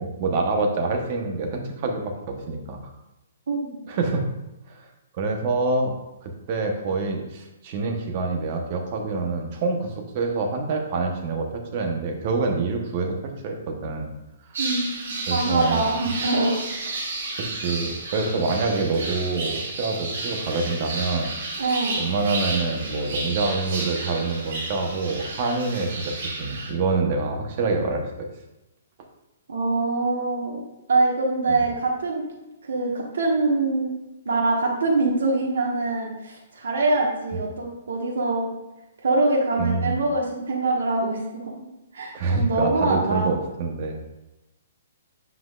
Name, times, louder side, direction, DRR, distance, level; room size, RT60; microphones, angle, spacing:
voice 1, 0.0-2.8 3.9-4.2 4.7-4.8 5.1-6.0 6.2-14.1 14.5-14.6 15.3-15.8 17.4-21.3 22.0-28.3 31.5-31.6 37.3-37.4 39.6-40.0 42.1-44.0, right 3 dB, 35° right, 3 dB, 0.9 m, -26 dB
voice 2, 3.5-3.8 14.6-16.6 21.6-22.0 29.5-30.6 30.9-32.2 32.7-33.9 34.2-38.5 39.0-41.4 41.9-43.3, right 2 dB, 85° right, -1 dB, 1.3 m, -24 dB
sound 1, 14.5-26.7, right 2 dB, 70° right, 2.2 m, -32 dB
7.5 x 5.8 x 2.4 m, 0.98 s
hypercardioid pair, 170°, 0 cm